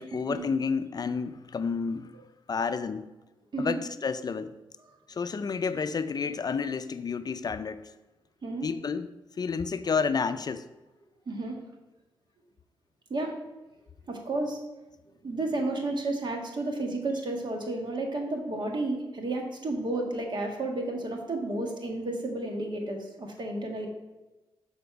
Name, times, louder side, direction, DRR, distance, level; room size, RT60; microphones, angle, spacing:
voice 1, 0.0-2.1 2.5-3.1 3.6-4.5 5.1-7.9 8.6-9.1 9.4-10.6, left 5 dB, 45° left, 0.4 m, -30 dB
voice 2, 11.2-11.6 13.1-13.3 14.1-14.6 15.2-23.9, right 2 dB, 55° right, 1.7 m, -32 dB
6.9 x 4.3 x 5.8 m
cardioid pair, 65°, 9 cm